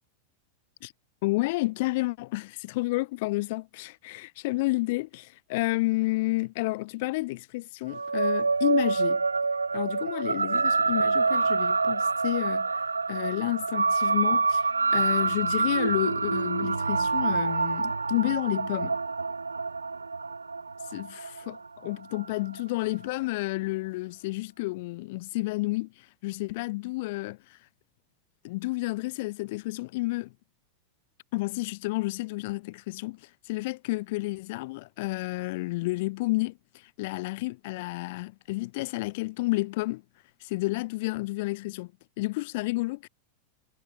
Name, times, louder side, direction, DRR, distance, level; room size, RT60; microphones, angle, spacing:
voice 1, 1.2-9.2 9.7-12.8 13.1-19.0 20.9-27.6 28.4-30.3 31.3-40.0 40.4-41.9 42.2-43.1, left 22 dB, 50° left, 4.1 m, -31 dB
sound 1, 7.9-22.6, right 4 dB, 80° right, 6.1 m, -27 dB
figure-of-eight pair, 90°, 0 cm